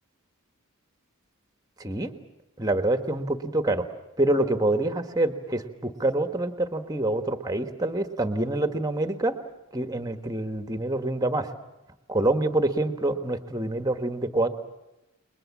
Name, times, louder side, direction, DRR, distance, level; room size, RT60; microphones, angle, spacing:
voice 1, 1.8-2.1 2.6-3.9 4.2-9.3 9.7-11.5 12.1-14.5, right 1 dB, 15° right, 8 dB, 1.5 m, -26 dB
30.0 x 21.5 x 7.5 m, 0.96 s
head